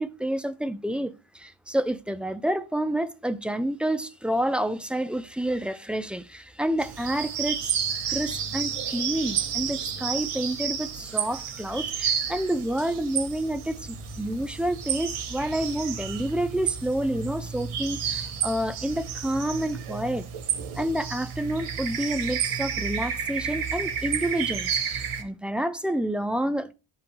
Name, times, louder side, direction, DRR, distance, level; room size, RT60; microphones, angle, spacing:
voice 1, 0.0-7.7 8.1-20.3 20.7-26.7, right 1 dB, ahead, 0.4 m, -29 dB
sound 1, 6.8-25.2, right 7 dB, 80° right, 1.3 m, -31 dB
11.5 x 3.9 x 2.9 m
cardioid pair, 95°, 50 cm